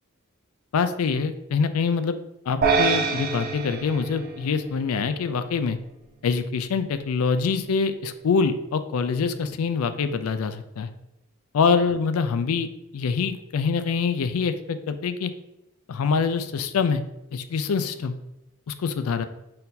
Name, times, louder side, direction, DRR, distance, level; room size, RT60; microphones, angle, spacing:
voice 1, 0.7-2.2 2.5-5.8 6.2-10.9 11.5-12.7 12.9-15.3 15.9-17.0 17.3-18.1 18.7-19.3, left 5 dB, 85° left, 10 dB, 0.4 m, -25 dB
sound 1, 2.6-5.1, right 5 dB, 45° right, 0.4 m, -25 dB
4.3 x 2.7 x 3.8 m, 0.89 s
head